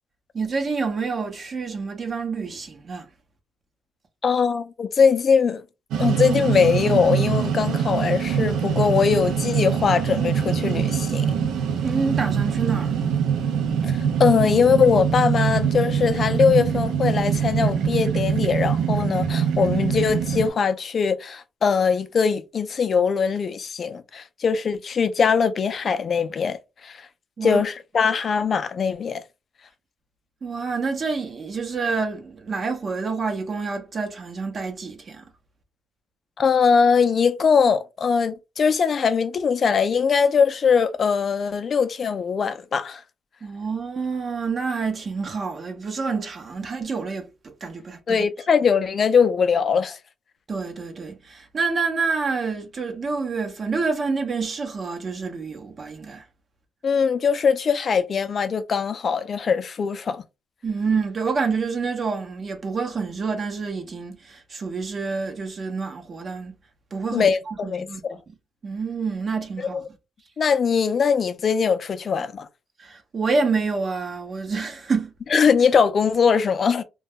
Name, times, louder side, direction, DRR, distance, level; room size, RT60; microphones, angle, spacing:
voice 1, 0.3-3.1 11.8-13.2 27.4-27.6 30.4-35.2 43.4-47.3 47.6-48.3 50.5-56.2 60.6-66.5 66.9-68.3 68.6-69.9 72.8-75.1, right 4 dB, 45° right, 0.7 m, -28 dB
voice 2, 4.2-5.6 6.0-11.5 13.8-27.0 27.4-29.2 36.4-43.0 48.1-50.0 56.8-60.2 67.1-68.2 69.6-69.7 70.4-72.5 75.3-76.8, left 6 dB, 50° left, 0.4 m, -21 dB
sound 1, 5.9-20.5, right 7 dB, 85° right, 0.5 m, -23 dB
2.2 x 2.1 x 3.4 m
cardioid pair, 90°, 0 cm